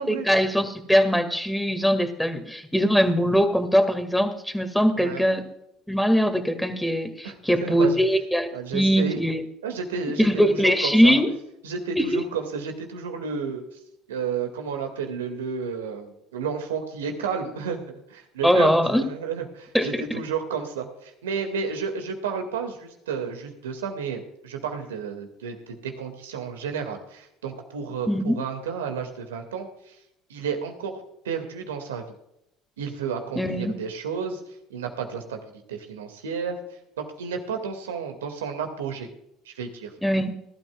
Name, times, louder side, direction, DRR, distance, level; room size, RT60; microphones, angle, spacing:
voice 1, 0.1-5.4 5.9-9.4 10.2-11.3 12.0-12.2 18.4-19.0 19.7-20.0 28.1-28.4 33.4-33.7 40.0-40.4, equal, 5° left, 7 dB, 2.1 m, -21 dB
voice 2, 7.2-8.0 8.5-9.2 9.6-11.2 11.6-13.6 14.1-29.9 30.3-30.9 31.2-32.0 32.8-34.4 34.7-36.6 37.0-39.1 39.5-39.9, right 6 dB, 85° right, 5 dB, 2.1 m, -32 dB
19.5 x 12.5 x 2.4 m, 0.79 s
hypercardioid pair, 70°, 0 cm